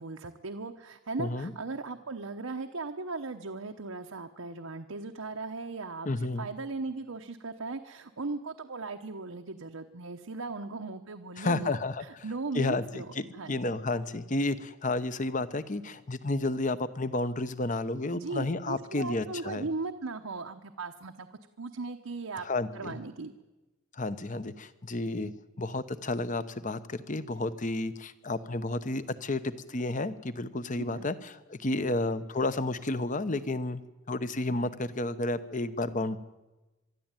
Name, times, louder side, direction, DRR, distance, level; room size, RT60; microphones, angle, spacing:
voice 1, 0.0-6.1 6.4-13.1 13.3-13.7 18.1-21.3 21.6-22.5 22.7-23.3 30.8-31.1, right 3 dB, 90° right, 4 dB, 1.0 m, -38 dB
voice 2, 1.2-1.5 6.0-6.5 11.4-12.2 12.5-12.8 13.2-19.7 22.4-23.0 23.9-25.3 25.6-33.8 34.1-36.2, left 2 dB, 40° left, 13 dB, 0.9 m, -31 dB
24.0 x 12.5 x 9.0 m, 1.1 s
head